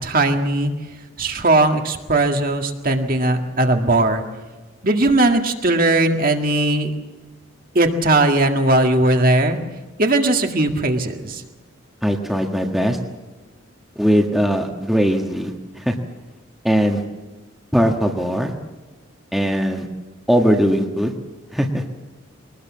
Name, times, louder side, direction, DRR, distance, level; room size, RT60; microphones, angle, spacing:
voice 1, 0.0-0.7 1.2-4.2 4.8-6.9 7.8-9.6 10.0-11.4, right 2 dB, 45° right, 4 dB, 1.9 m, -18 dB
voice 2, 12.0-13.0 13.9-15.9 16.6-17.0 17.7-18.5 19.3-19.9 20.3-21.1 21.5-21.8, equal, ahead, 2 dB, 1.5 m, -19 dB
23.0 x 19.5 x 7.4 m, 1.2 s
head